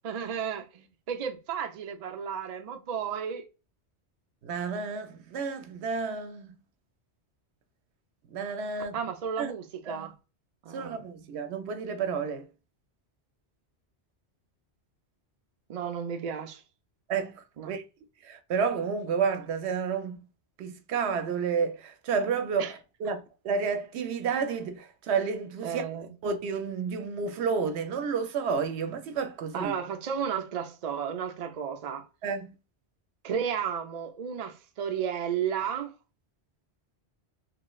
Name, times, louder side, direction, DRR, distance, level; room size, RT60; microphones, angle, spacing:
voice 1, 0.0-3.5 8.9-10.1 10.6-11.0 15.7-16.6 17.6-17.7 22.6-22.8 25.6-26.1 29.5-32.1 33.2-35.9, right 7 dB, 50° right, 0.5 m, -33 dB
voice 2, 4.4-6.5 8.3-9.0 9.4-9.5 9.9-10.1 10.7-12.5 17.1-17.8 18.2-20.2 20.6-25.8 26.2-29.7 32.2-32.5, right 5 dB, 75° right, 0.8 m, -31 dB
3.0 x 3.0 x 2.2 m
omnidirectional pair, 1.1 m